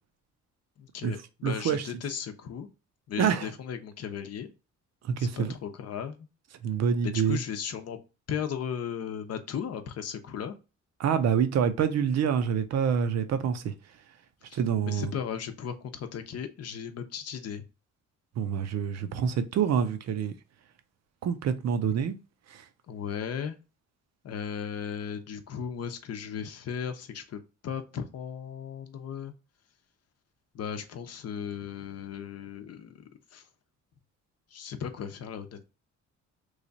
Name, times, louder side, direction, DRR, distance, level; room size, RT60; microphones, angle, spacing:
voice 1, 0.8-2.7 3.1-4.5 5.2-6.3 7.0-8.0 8.3-10.6 14.5-14.6 14.8-17.6 22.9-23.6 24.2-29.3 30.5-33.5 34.5-35.6, left 7 dB, 55° left, 0.7 m, -36 dB
voice 2, 1.4-1.8 3.2-3.5 5.0-5.5 6.6-7.4 11.0-13.7 14.5-15.1 18.4-20.3 21.2-22.2 22.5-22.6, right 7 dB, 60° right, 0.6 m, -26 dB
3.1 x 2.3 x 3.8 m
cardioid pair, 90°, 30 cm